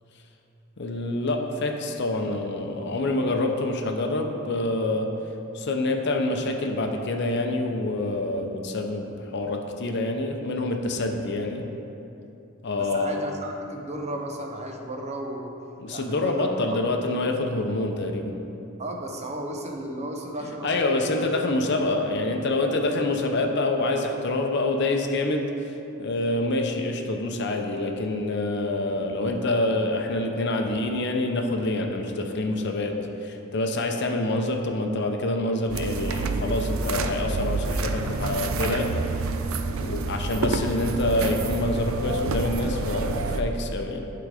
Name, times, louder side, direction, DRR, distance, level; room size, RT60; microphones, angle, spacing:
voice 1, 0.8-5.1 5.5-11.6 12.6-13.2 15.8-18.3 20.6-25.5 26.0-33.0 33.2-38.9 39.8-44.0, left 2 dB, 55° left, 4 dB, 0.6 m, -26 dB
voice 2, 12.8-15.5 15.9-16.8 18.8-21.3, right 1 dB, 30° right, 2 dB, 0.7 m, -34 dB
sound 1, 35.7-43.4, right 3 dB, 75° right, 0.5 m, -28 dB
11.5 x 3.9 x 4.9 m, 2.9 s
head